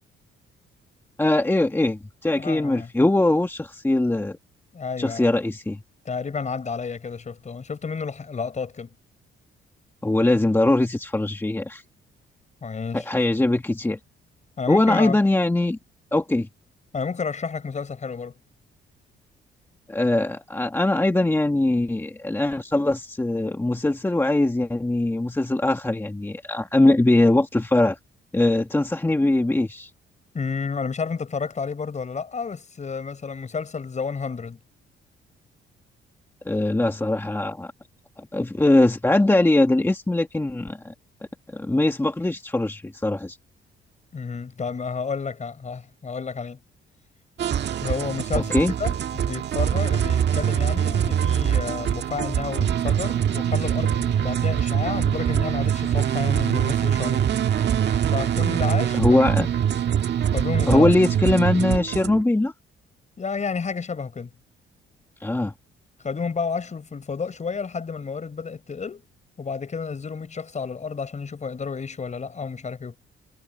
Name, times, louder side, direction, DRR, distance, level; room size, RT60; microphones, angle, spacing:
voice 1, 1.2-4.4 5.0-5.8 10.0-11.8 12.9-14.0 14.7-15.8 16.1-16.5 19.9-28.0 28.3-29.9 36.4-37.7 38.2-40.9 41.5-43.4 48.3-48.7 59.0-59.5 60.7-62.5 65.2-65.5, left 2 dB, 10° left, 1.5 m, -21 dB
voice 2, 2.3-2.9 4.7-5.3 6.1-8.9 12.6-13.1 14.6-15.2 16.9-18.3 30.3-34.6 44.1-46.6 47.8-57.2 58.1-59.5 60.3-60.9 63.2-64.3 66.0-69.0 69.4-73.0, left 5 dB, 35° left, 5.5 m, -31 dB
sound 1, 47.4-62.2, right 9 dB, 60° right, 1.6 m, -23 dB
cardioid pair, 90°, 20 cm